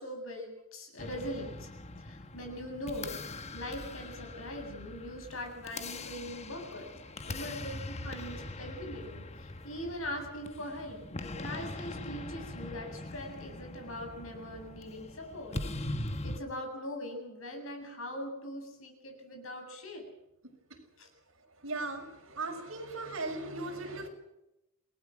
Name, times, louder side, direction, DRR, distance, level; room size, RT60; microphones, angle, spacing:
voice 1, 0.0-1.7 2.0-6.9 7.2-15.6 15.9-20.0 21.0-21.1, equal, 70° left, 4 dB, 8.0 m, -41 dB
sound 1, 1.0-16.4, left 2 dB, 30° left, 1.1 m, -42 dB
voice 2, 7.1-7.4 8.2-8.4 21.6-24.1, right 2 dB, 65° right, 3 dB, 6.6 m, -38 dB
28.5 x 19.5 x 6.4 m, 0.88 s
head